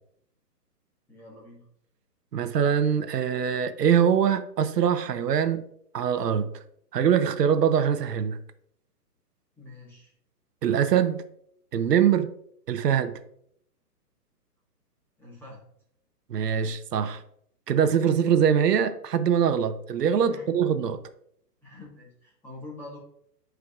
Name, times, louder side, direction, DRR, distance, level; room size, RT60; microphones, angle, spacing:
voice 1, 1.1-1.6 9.6-10.1 15.2-15.6 20.3-20.4 21.6-23.0, left 2 dB, 5° left, 1.4 m, -45 dB
voice 2, 2.3-5.7 5.9-6.5 6.9-8.4 10.6-11.2 11.7-12.3 12.7-13.2 16.3-17.2 17.7-21.0, right 8 dB, 75° right, 0.9 m, -23 dB
11.5 x 4.8 x 2.4 m
hypercardioid pair, 160°, 48 cm